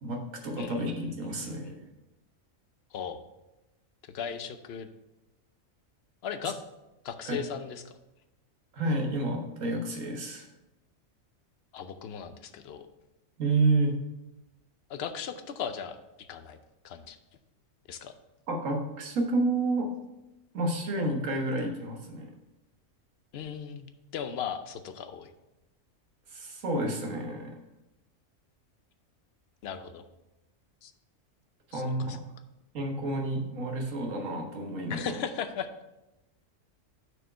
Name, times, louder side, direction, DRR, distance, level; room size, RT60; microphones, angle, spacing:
voice 1, 0.0-1.8 6.4-6.5 7.3-7.4 8.7-10.5 13.4-13.9 18.5-19.9 20.5-22.3 26.3-27.5 31.7-32.2 32.7-35.1, right 2 dB, 75° right, 2 dB, 1.6 m, -30 dB
voice 2, 0.6-1.8 2.9-3.2 4.0-4.9 6.2-6.6 7.0-7.9 11.7-12.9 14.9-16.6 16.8-17.2 17.9-18.1 23.3-25.3 29.6-30.0 30.8-30.9 31.7-32.2 34.9-35.7, left 7 dB, 60° left, 9 dB, 0.8 m, -37 dB
6.6 x 4.7 x 5.5 m, 0.97 s
omnidirectional pair, 1.4 m